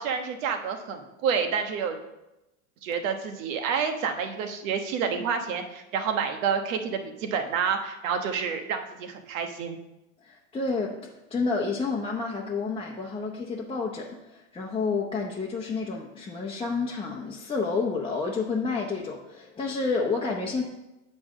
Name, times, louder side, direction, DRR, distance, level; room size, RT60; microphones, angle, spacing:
voice 1, 0.0-2.0 2.8-9.8, right 6 dB, 80° right, 5 dB, 1.3 m, -29 dB
voice 2, 10.2-11.0 11.3-20.6, left 4 dB, 15° left, -2 dB, 0.8 m, -29 dB
8.6 x 4.3 x 6.2 m, 0.95 s
supercardioid pair, 125°, 39 cm